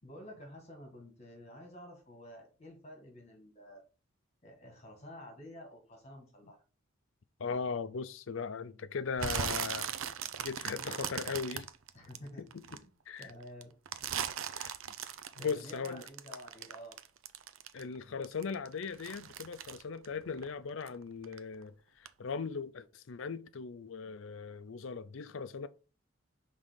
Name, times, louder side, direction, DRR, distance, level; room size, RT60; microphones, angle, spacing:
voice 1, 0.0-3.8 4.4-6.6 7.4-7.7 11.9-12.9 13.2-13.7 15.4-17.0, equal, 30° left, 1.9 m, -50 dB
voice 2, 7.4-9.9 10.4-11.7 12.4-12.6 13.1-13.3 14.5-14.7 15.4-16.0 17.7-25.7, left 5 dB, 70° left, 0.5 m, -38 dB
sound 1, 9.2-12.8 13.2-18.0 18.2-21.0 21.2-21.6 22.1-22.2, right 8 dB, 75° right, 0.5 m, -38 dB
5.7 x 3.7 x 5.2 m
head